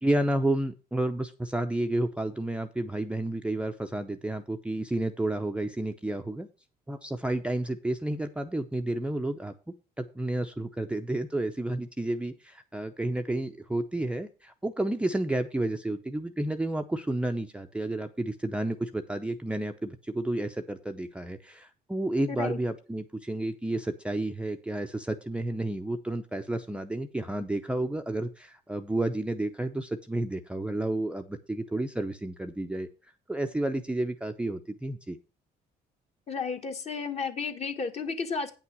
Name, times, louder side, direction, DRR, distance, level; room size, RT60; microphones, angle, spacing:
voice 1, 0.0-6.5 6.9-9.5 10.0-32.9 33.3-35.2, right 1 dB, 5° right, 5 dB, 0.7 m, -31 dB
voice 2, 22.3-22.6 36.3-38.5, left 5 dB, 40° left, 5 dB, 1.6 m, -32 dB
8.9 x 5.9 x 6.1 m, 0.32 s
cardioid pair, 110°, 17 cm